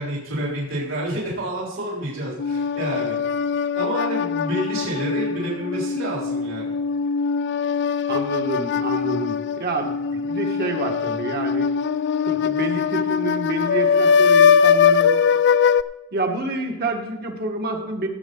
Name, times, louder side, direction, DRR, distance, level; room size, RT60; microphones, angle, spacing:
voice 1, 0.0-3.2 3.7-6.7, right 1 dB, 65° right, -5 dB, 3.8 m, -28 dB
sound 1, 2.4-15.8, left 6 dB, 55° left, 0.4 m, -21 dB
voice 2, 8.1-11.7 12.3-15.1 16.1-18.1, right 2 dB, 50° right, 3 dB, 1.7 m, -28 dB
16.5 x 8.0 x 3.9 m, 1.0 s
head